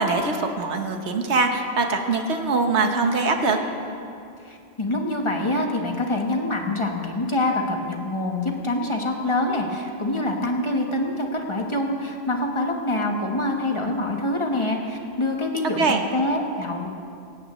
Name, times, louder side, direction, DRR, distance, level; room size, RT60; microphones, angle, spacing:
voice 1, 0.0-3.6 15.8-16.0, right 3 dB, 85° right, 5 dB, 1.4 m, -22 dB
voice 2, 4.4-15.8 16.1-16.9, left 1 dB, 30° left, 2 dB, 1.2 m, -25 dB
17.0 x 15.5 x 3.1 m, 2.5 s
omnidirectional pair, 1.1 m